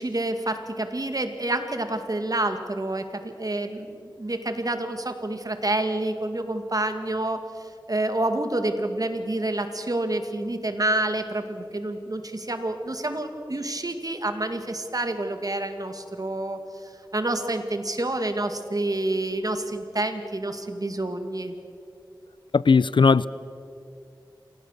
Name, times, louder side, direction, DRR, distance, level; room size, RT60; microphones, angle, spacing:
voice 1, 0.0-16.6 17.1-21.5, right 2 dB, 50° right, 2.2 m, -28 dB
voice 2, 22.5-23.3, left 5 dB, 80° left, 0.5 m, -17 dB
27.0 x 18.0 x 6.7 m
wide cardioid pair, 50°, 8 cm